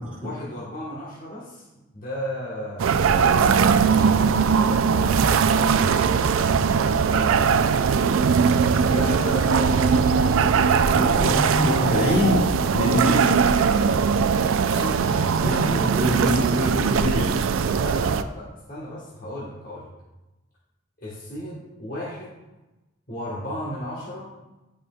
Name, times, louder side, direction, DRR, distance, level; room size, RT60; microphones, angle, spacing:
voice 1, 0.2-1.6 1.9-5.7 7.0-7.4 8.7-11.4 14.7-15.5 17.7-19.9 21.0-22.4 23.1-24.3, left 1 dB, 45° left, -6 dB, 1.3 m, -35 dB
sound 1, 2.8-18.2, right 6 dB, 85° right, 0.4 m, -20 dB
voice 2, 10.9-13.6 15.4-17.5, left 1 dB, 5° right, -12 dB, 2.0 m, -25 dB
11.0 x 5.0 x 2.3 m, 1.0 s
head